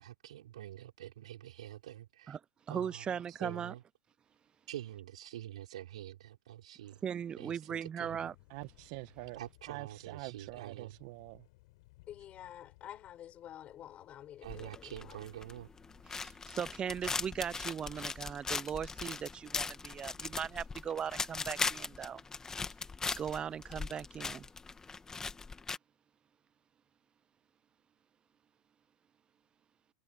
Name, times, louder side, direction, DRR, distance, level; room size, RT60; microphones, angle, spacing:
voice 1, 0.0-2.4 2.7-3.8 4.7-7.0 7.4-8.3 9.3-11.0 14.4-15.7, right 12 dB, 80° right, 5.2 m, -46 dB
voice 2, 2.7-3.7 7.0-8.3 16.1-19.7 20.0-22.2 23.2-24.5, right 8 dB, 25° right, 0.6 m, -38 dB
Thunder, 8.1-18.1, left 22 dB, 65° left, 7.9 m, -64 dB
voice 3, 8.5-9.4 9.7-11.5, right 24 dB, 60° right, 1.4 m, -45 dB
voice 4, 12.1-15.2, left 11 dB, 35° left, 7.4 m, -49 dB
sound 1, 14.4-25.8, left 4 dB, 15° left, 2.0 m, -39 dB
hypercardioid pair, 105°, 3 cm